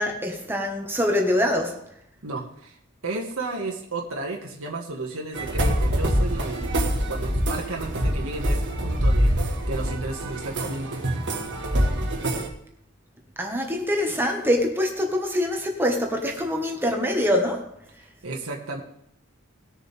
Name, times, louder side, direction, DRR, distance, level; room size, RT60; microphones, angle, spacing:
voice 1, 0.0-1.9 13.4-17.7, left 1 dB, 10° right, 1.6 m, -24 dB
voice 2, 2.2-2.8 3.0-10.9 18.2-18.8, right 2 dB, 75° right, 1.8 m, -33 dB
sound 1, 5.3-12.5, equal, 60° right, 1.8 m, -25 dB
19.5 x 7.0 x 3.5 m
head